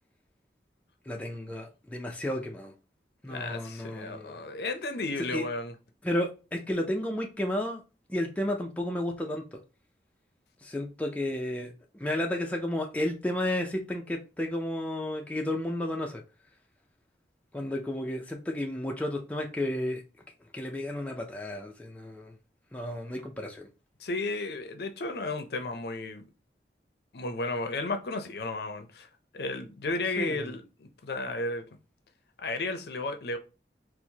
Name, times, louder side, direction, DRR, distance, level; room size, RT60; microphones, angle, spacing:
voice 1, 1.1-2.7 3.2-4.4 5.2-5.4 6.0-7.8 8.1-9.6 10.6-16.2 17.5-20.0 20.5-22.3 22.7-23.7 30.2-30.5, left 1 dB, 10° left, 0.4 m, -32 dB
voice 2, 3.3-5.7 24.0-26.2 27.1-29.1 29.3-31.6 32.4-33.4, left 2 dB, 65° left, 0.5 m, -33 dB
4.4 x 2.0 x 2.8 m
head